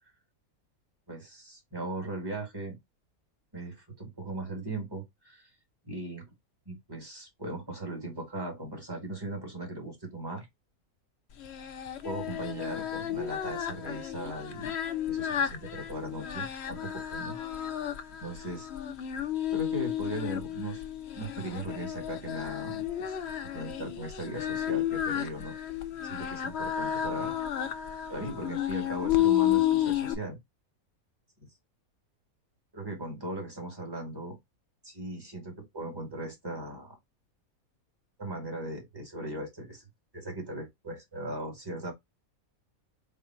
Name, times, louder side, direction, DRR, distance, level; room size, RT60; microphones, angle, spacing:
voice 1, 1.1-2.8 3.5-5.5 5.9-6.2 6.6-10.5 12.0-14.8 15.1-17.4 18.2-18.7 19.5-20.8 21.1-23.2 23.5-25.6 26.0-27.3 28.1-30.4 31.4-31.5 32.7-34.4 34.8-37.0 38.2-39.8 40.1-41.9, right 1 dB, 15° right, 1.6 m, -38 dB
Singing, 11.4-30.1, left 11 dB, 60° left, 0.8 m, -32 dB
4.4 x 2.4 x 4.3 m
omnidirectional pair, 1.5 m